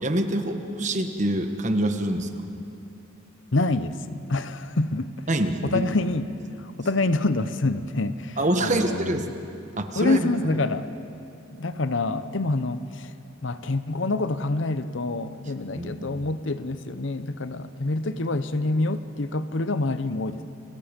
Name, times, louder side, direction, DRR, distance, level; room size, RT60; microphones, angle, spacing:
voice 1, 0.0-2.5 5.3-5.8 8.4-9.3 9.8-10.6 15.7-16.1, right 1 dB, 35° right, 6 dB, 1.4 m, -26 dB
voice 2, 3.5-5.3 5.7-6.3 6.6-9.1 10.0-10.9 11.5-13.1 13.4-20.4, left 2 dB, 65° left, 12 dB, 0.9 m, -26 dB
30.0 x 24.5 x 5.3 m, 2.7 s
head